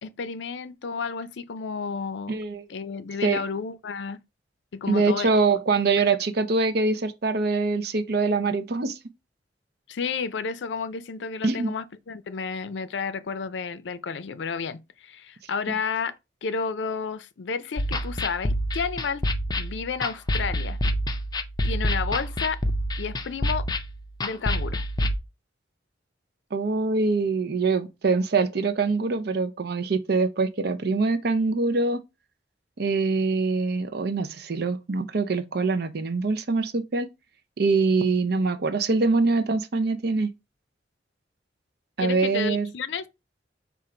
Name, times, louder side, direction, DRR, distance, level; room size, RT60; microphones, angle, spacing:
voice 1, 0.0-2.3 2.7-4.2 4.7-5.3 6.0-6.1 9.9-16.2 16.4-19.2 19.6-20.8 21.6-22.6 23.0-23.7 24.2-24.8 42.0-43.1, left 5 dB, 85° left, 0.5 m, -31 dB
voice 2, 2.3-2.7 3.2-3.4 4.9-9.0 11.4-11.7 26.5-32.0 32.8-37.1 37.6-40.3 42.0-42.7, right 3 dB, 60° right, 0.6 m, -24 dB
sound 1, 17.8-25.2, equal, 25° left, 0.5 m, -27 dB
4.4 x 2.5 x 4.8 m
head